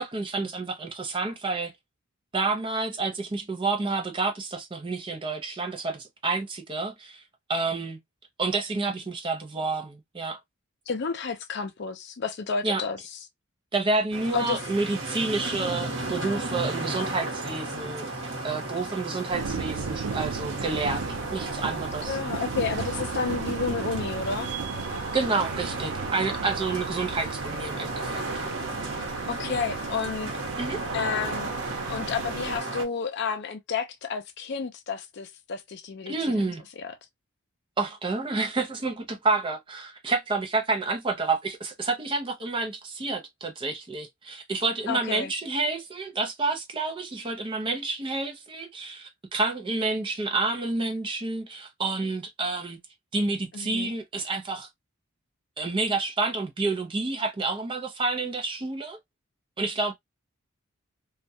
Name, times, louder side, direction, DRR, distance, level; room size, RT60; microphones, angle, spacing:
voice 1, 0.0-1.7 2.3-7.2 7.5-8.0 8.4-10.4 12.6-12.8 13.7-18.1 18.4-22.2 25.1-28.2 30.6-30.8 36.1-36.6 37.8-52.8 53.1-54.7 55.6-59.0 59.6-59.9, right 3 dB, 25° right, 0.5 m, -29 dB
voice 2, 10.9-13.0 14.3-14.6 22.1-24.5 29.3-30.3 30.9-31.6 31.9-36.5 36.8-36.9 44.9-45.3 53.5-53.9, left 5 dB, 50° left, 0.5 m, -31 dB
sound 1, 14.1-32.8, right 2 dB, 60° right, 1.0 m, -34 dB
sound 2, 19.3-32.6, right 5 dB, 90° right, 0.4 m, -36 dB
2.3 x 2.1 x 2.6 m
head